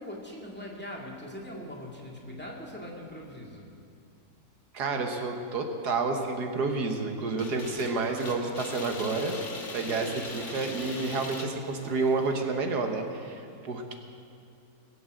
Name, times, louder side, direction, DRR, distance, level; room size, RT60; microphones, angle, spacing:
voice 1, 0.0-3.7 7.4-7.5, left 1 dB, 5° left, -2 dB, 2.1 m, -41 dB
voice 2, 4.7-9.4 9.7-13.9, right 3 dB, 85° right, 4 dB, 1.8 m, -30 dB
sound 1, 7.4-12.4, left 3 dB, 50° left, 1.8 m, -40 dB
20.5 x 7.9 x 7.6 m, 2.4 s
omnidirectional pair, 1.7 m